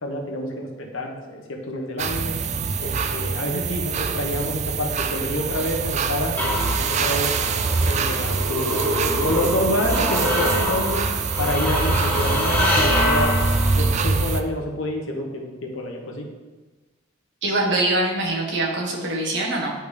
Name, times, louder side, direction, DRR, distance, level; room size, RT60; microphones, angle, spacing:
voice 1, 0.0-2.3 2.8-6.4 6.9-7.3 7.8-11.1 11.4-13.4 13.8-16.3, left 1 dB, 75° left, 2 dB, 1.0 m, -28 dB
sound 1, 2.0-14.4, right 4 dB, 35° right, 0.3 m, -24 dB
sound 2, 5.5-14.0, equal, 10° left, 1.2 m, -26 dB
voice 2, 17.4-19.7, right 2 dB, 60° right, -2 dB, 1.4 m, -23 dB
10.0 x 3.4 x 3.3 m, 1.2 s
head